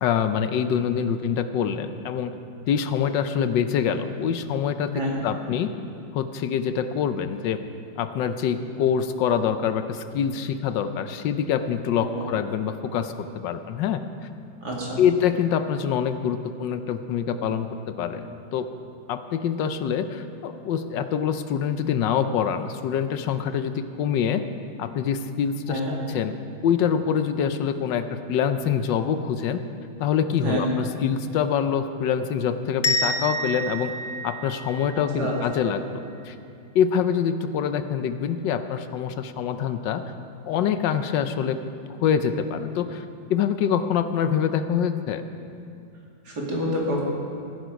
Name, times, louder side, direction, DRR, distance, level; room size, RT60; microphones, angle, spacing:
voice 1, 0.0-2.3 2.7-4.9 5.2-5.7 6.1-7.6 8.0-14.0 15.0-17.7 18.0-18.7 19.1-24.4 24.8-25.8 26.1-26.3 26.6-29.6 30.0-33.9 34.2-36.3 36.7-40.0 40.5-41.6 42.0-43.0 43.3-45.2, left 8 dB, 80° left, 10 dB, 1.4 m, -25 dB
voice 2, 14.6-15.0 25.7-26.0 30.4-30.6 35.2-35.4 35.6-35.7 46.2-47.0, right 1 dB, 60° right, -3 dB, 3.0 m, -28 dB
sound 1, 32.8-35.6, equal, 50° left, 0.6 m, -28 dB
17.0 x 10.5 x 5.2 m, 2.5 s
omnidirectional pair, 1.9 m